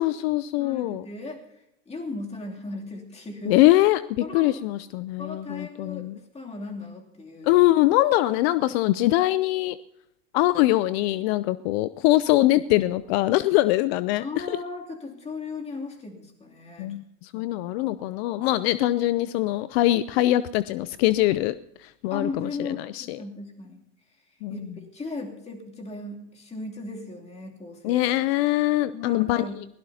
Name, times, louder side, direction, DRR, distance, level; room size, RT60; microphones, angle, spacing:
voice 1, 0.0-1.0 3.5-6.2 7.4-9.8 10.3-14.6 16.8-21.5 21.8-23.2 24.4-24.7 27.8-29.4, left 16 dB, 65° left, 16 dB, 0.5 m, -23 dB
voice 2, 0.6-1.4 1.9-3.6 4.2-4.5 5.2-7.6 14.2-16.9 17.3-18.0 22.1-23.8 24.5-28.4 28.9-29.6, left 3 dB, 20° left, 0 dB, 2.9 m, -37 dB
22.5 x 17.0 x 2.8 m, 0.81 s
supercardioid pair, 110°, 33 cm